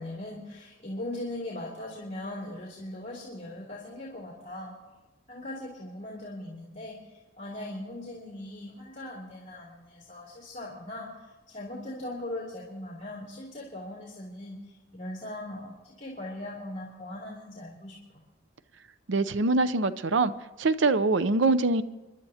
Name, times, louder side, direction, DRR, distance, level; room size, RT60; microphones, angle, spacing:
voice 1, 0.0-4.8 5.3-18.0, left 1 dB, 35° left, -5 dB, 2.9 m, -39 dB
voice 2, 19.1-20.3 20.6-21.8, right 3 dB, 70° right, 14 dB, 0.6 m, -24 dB
28.5 x 11.5 x 2.8 m, 1.2 s
head